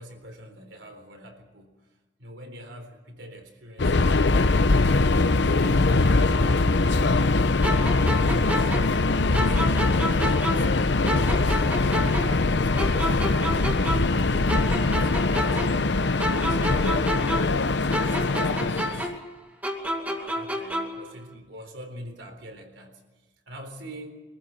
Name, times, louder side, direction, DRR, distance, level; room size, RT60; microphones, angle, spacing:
voice 1, 0.0-1.8 2.2-4.7 5.1-7.0 7.5-9.9 10.3-13.7 14.2-17.1 17.6-19.1 19.7-23.0 23.5-24.1, equal, 80° right, 5 dB, 3.9 m, -43 dB
Subway metro underground, 3.8-19.1, left 3 dB, 70° left, 0.8 m, -22 dB
sound 1, 7.6-10.8 11.1-14.2 14.5-17.6 17.9-21.1, equal, 10° right, 2.4 m, -30 dB
24.0 x 14.5 x 8.8 m, 1.3 s
head